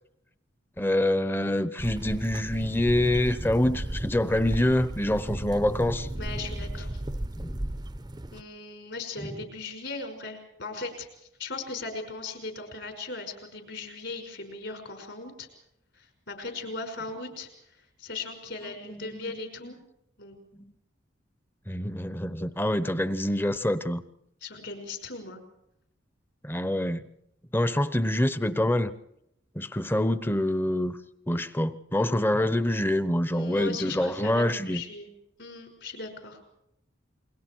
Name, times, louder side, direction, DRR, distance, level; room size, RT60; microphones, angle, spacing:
voice 1, 0.8-6.1 7.4-7.7 9.2-9.3 18.9-19.3 20.6-20.7 21.7-24.0 26.4-27.0 27.5-28.9 29.5-31.0 31.3-34.8, left 1 dB, 10° left, 13 dB, 0.9 m, -26 dB
sound 1, 1.8-8.4, right 1 dB, 20° right, 0.7 m, -35 dB
voice 2, 6.2-7.0 8.3-11.1 11.4-15.5 16.0-19.8 20.2-20.4 24.4-25.4 33.3-35.1 35.4-36.4, left 3 dB, 60° left, 5 dB, 5.8 m, -38 dB
29.0 x 22.5 x 4.7 m, 0.77 s
head